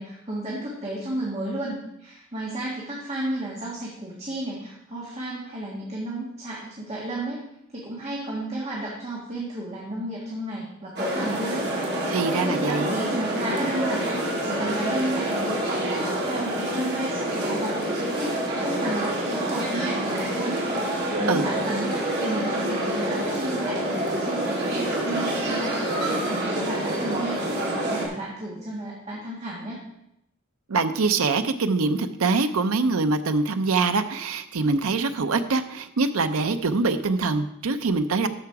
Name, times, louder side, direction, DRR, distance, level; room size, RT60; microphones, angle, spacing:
voice 1, 0.0-7.4 7.7-15.6 15.9-29.8, right 1 dB, 30° right, -5 dB, 1.7 m, -33 dB
sound 1, 11.0-28.1, right 1 dB, 50° right, 2.6 m, -27 dB
voice 2, 12.1-13.0 21.3-21.5 30.7-38.3, right 3 dB, 85° right, 9 dB, 0.6 m, -24 dB
12.5 x 4.8 x 4.7 m, 0.83 s
head